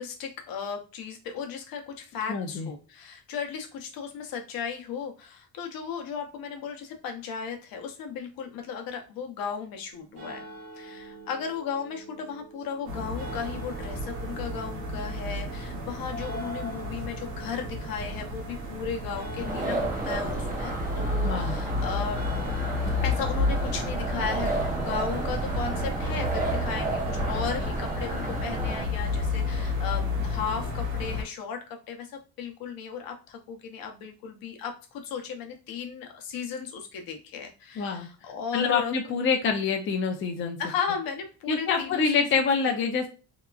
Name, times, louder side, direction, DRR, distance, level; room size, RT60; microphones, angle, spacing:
voice 1, 0.0-10.4 10.8-22.4 23.0-38.9 40.6-42.4, left 6 dB, 75° left, 3 dB, 0.7 m, -35 dB
voice 2, 2.3-2.7 21.2-21.6 37.8-38.1 38.5-40.6 41.5-43.1, left 5 dB, 35° left, 2 dB, 0.5 m, -26 dB
sound 1, 9.9-23.5, right 2 dB, 45° right, 1.2 m, -45 dB
sound 2, 12.9-31.2, left 2 dB, 80° right, 1.2 m, -31 dB
sound 3, 19.4-28.9, right 2 dB, 25° right, 0.6 m, -32 dB
2.8 x 2.2 x 2.3 m, 0.33 s
cardioid pair, 150°, 35 cm